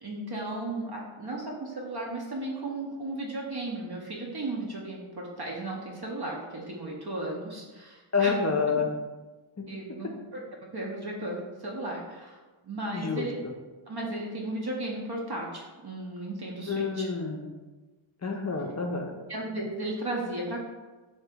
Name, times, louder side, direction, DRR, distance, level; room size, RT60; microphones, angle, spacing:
voice 1, 0.0-8.6 9.7-10.4 10.7-12.4 12.6-13.4 13.9-17.1 19.3-20.6, right 2 dB, 50° right, -2 dB, 0.7 m, -35 dB
voice 2, 8.1-8.9 9.6-9.7 12.9-13.5 16.7-17.5 18.2-19.1, left 5 dB, 35° left, 2 dB, 0.4 m, -28 dB
2.8 x 2.8 x 3.4 m, 1.2 s
wide cardioid pair, 40°, 49 cm